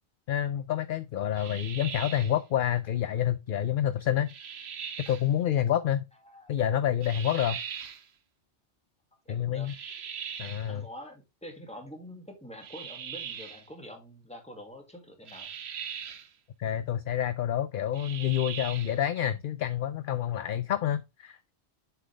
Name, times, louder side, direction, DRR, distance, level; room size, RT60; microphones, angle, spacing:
voice 1, 0.3-4.3 5.1-6.0 6.5-7.6 9.3-9.7 10.4-10.8 16.6-21.5, left 10 dB, 60° left, 0.6 m, -28 dB
sound 1, 1.4-2.4 4.3-5.3 7.0-8.1 9.7-10.7 12.6-13.7 15.3-16.3 17.9-19.0, right 7 dB, 70° right, 1.1 m, -40 dB
voice 2, 9.3-9.7 10.7-15.5, equal, 5° left, 2.1 m, -46 dB
7.5 x 5.8 x 3.4 m
omnidirectional pair, 1.1 m